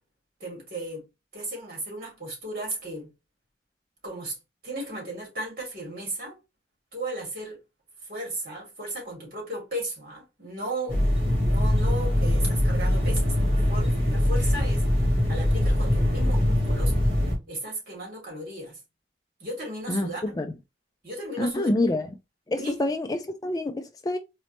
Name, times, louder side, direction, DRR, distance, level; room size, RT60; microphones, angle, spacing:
voice 1, 0.4-1.0 1.3-3.1 4.0-4.4 4.6-6.4 6.9-7.6 8.1-14.8 15.3-16.9 17.5-18.8 19.4-20.4 21.0-21.9 22.6-22.8, right 1 dB, 50° right, 2.5 m, -35 dB
sound 1, 10.9-17.4, left 1 dB, 30° right, 2.0 m, -22 dB
voice 2, 21.4-22.1 22.5-24.2, left 2 dB, 20° left, 0.3 m, -27 dB
4.0 x 3.1 x 3.0 m
head